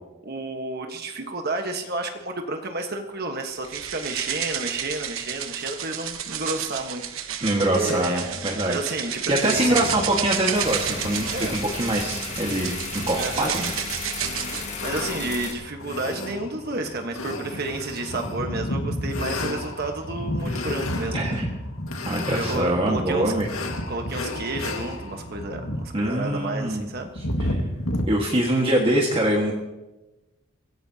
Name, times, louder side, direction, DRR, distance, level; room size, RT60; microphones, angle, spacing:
voice 1, 0.2-7.4 7.7-8.4 8.6-9.8 11.3-11.5 13.2-13.6 14.5-21.4 22.3-23.3 23.9-27.1, right 2 dB, 50° right, 4 dB, 1.4 m, -31 dB
sound 1, 3.6-14.7, right 9 dB, 75° right, 1.1 m, -31 dB
voice 2, 7.4-8.8 9.3-12.8 13.1-13.7 21.1-21.5 22.0-23.5 25.9-26.9 27.5-27.6 28.1-29.6, right 1 dB, 25° right, -1 dB, 1.7 m, -24 dB
sound 2, 9.5-28.1, left 1 dB, 80° left, 1.9 m, -32 dB
sound 3, 10.5-15.5, left 4 dB, 35° left, 2.0 m, -34 dB
24.5 x 16.5 x 2.9 m, 1.0 s
head